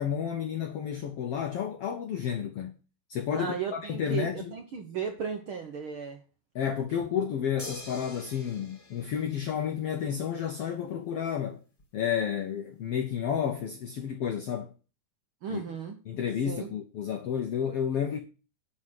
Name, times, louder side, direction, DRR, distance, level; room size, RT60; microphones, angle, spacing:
voice 1, 0.0-2.7 3.1-4.5 6.5-11.6 11.9-14.7 15.5-15.6 16.1-18.2, left 8 dB, 75° left, 1.4 m, -31 dB
voice 2, 3.3-6.2 7.0-7.1 15.4-16.0 16.4-16.7, right 7 dB, 70° right, 1.2 m, -35 dB
sound 1, 7.6-10.1 11.8-11.9, left 2 dB, 20° left, 1.4 m, -46 dB
11.5 x 4.3 x 7.5 m
omnidirectional pair, 3.9 m